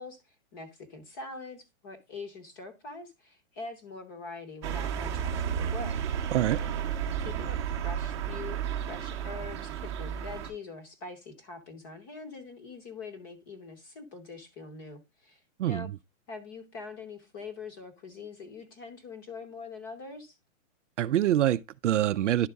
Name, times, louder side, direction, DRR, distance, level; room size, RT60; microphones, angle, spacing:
voice 1, 0.0-6.0 6.5-6.8 7.2-8.6 8.9-15.9 16.3-20.4, left 3 dB, 15° left, 0.9 m, -43 dB
sound 1, 4.6-10.5, right 8 dB, 20° right, 0.9 m, -32 dB
voice 2, 21.0-22.5, right 12 dB, 65° right, 0.5 m, -25 dB
11.0 x 4.0 x 3.4 m
hypercardioid pair, 175°, 39 cm